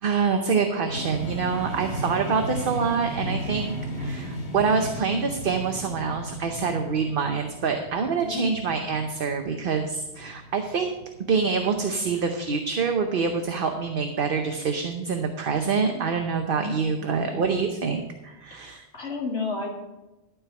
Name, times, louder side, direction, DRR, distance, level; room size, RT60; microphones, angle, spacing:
voice 1, 0.0-10.9 11.3-18.9, right 5 dB, 55° right, 5 dB, 1.0 m, -26 dB
sound 1, 0.9-12.7, right 1 dB, 55° left, 1.6 m, -35 dB
voice 2, 16.5-17.6 18.9-19.7, left 4 dB, 75° left, 0 dB, 2.4 m, -32 dB
12.5 x 4.8 x 7.8 m, 1.1 s
omnidirectional pair, 1.2 m